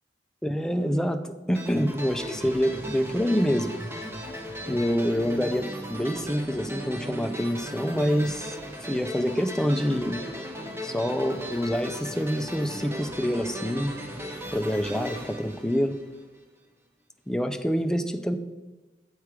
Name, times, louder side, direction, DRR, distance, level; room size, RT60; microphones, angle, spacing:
voice 1, 0.4-3.8 4.7-8.6 8.9-10.2 10.8-13.9 14.5-15.9 17.3-18.4, equal, 5° left, 7 dB, 0.3 m, -26 dB
sound 1, 1.6-16.4, equal, 15° right, 0.7 m, -37 dB
7.3 x 4.6 x 4.7 m, 1.2 s
head